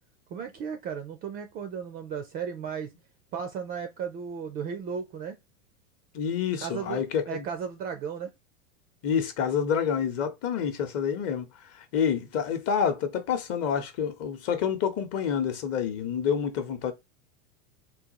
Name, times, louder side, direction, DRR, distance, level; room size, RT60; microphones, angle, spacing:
voice 1, 0.3-2.9 3.3-5.4 6.6-8.3, right 7 dB, 25° right, 0.3 m, -35 dB
voice 2, 6.1-7.4 9.0-11.5 11.7-16.9, left 7 dB, 35° left, 0.8 m, -28 dB
3.7 x 2.3 x 2.8 m
hypercardioid pair, 115°, 40 cm